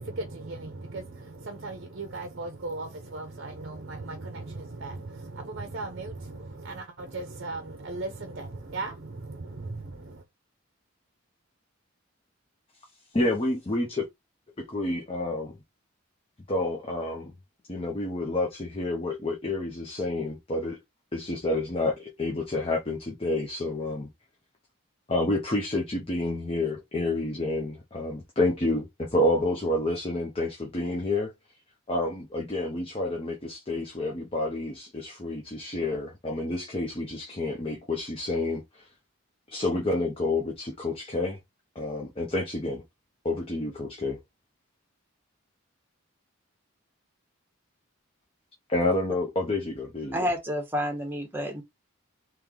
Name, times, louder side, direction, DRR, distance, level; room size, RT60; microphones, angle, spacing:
voice 1, 0.0-10.2, right 2 dB, 55° right, 0.6 m, -37 dB
voice 2, 13.1-14.1 14.6-15.6 16.5-17.3 17.7-20.8 21.1-24.1 25.1-31.3 31.9-38.9 39.5-41.4 41.7-42.8 43.2-44.2 48.7-50.3, left 2 dB, 25° left, 0.6 m, -29 dB
voice 3, 50.1-51.6, equal, 10° right, 1.0 m, -29 dB
3.2 x 3.0 x 3.6 m
head